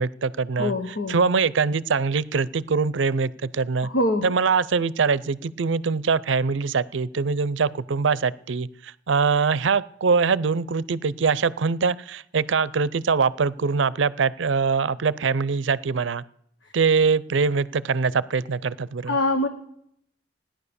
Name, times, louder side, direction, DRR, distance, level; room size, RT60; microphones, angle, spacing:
voice 1, 0.0-0.7 1.1-3.9 4.2-16.2 16.7-19.1, right 5 dB, 85° right, 20 dB, 0.5 m, -23 dB
voice 2, 0.6-1.2 3.8-4.4 19.1-19.5, left 1 dB, 80° left, 6 dB, 1.1 m, -24 dB
16.5 x 10.5 x 6.9 m, 0.72 s
head